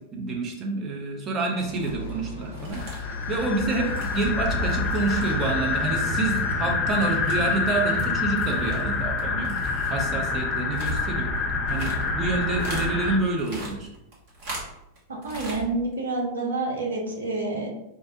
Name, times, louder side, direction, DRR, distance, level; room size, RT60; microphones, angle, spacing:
voice 1, 0.1-9.6 9.9-11.3 11.7-13.9, right 3 dB, 25° right, 0 dB, 0.8 m, -28 dB
sound 1, 1.6-6.6, left 2 dB, 75° left, 0.5 m, -37 dB
sound 2, 1.8-2.1 2.4-5.7 5.9-8.1 8.3-12.9 13.2-15.0 15.2-15.6 15.9-16.0, right 1 dB, 45° right, 1.2 m, -39 dB
sound 3, 2.7-13.2, left 4 dB, 25° left, 0.5 m, -27 dB
voice 2, 15.2-17.7, right 2 dB, 70° right, 0 dB, 0.7 m, -28 dB
4.6 x 2.1 x 2.7 m, 0.89 s
figure-of-eight pair, 90°, 0 cm